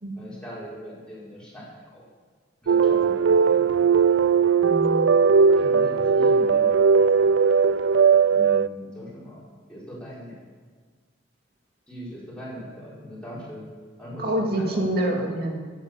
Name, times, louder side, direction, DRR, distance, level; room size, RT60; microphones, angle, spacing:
voice 1, 0.2-2.1 2.6-3.7 5.6-6.7 8.3-9.4 9.7-10.4 11.9-13.7 14.0-15.1, equal, 5° left, -8 dB, 5.1 m, -40 dB
sound 1, 2.7-8.7, right 5 dB, 80° right, 0.4 m, -18 dB
voice 2, 4.6-5.1 14.2-15.6, right 1 dB, 50° right, 0 dB, 2.6 m, -26 dB
15.0 x 9.0 x 7.0 m, 1.5 s
head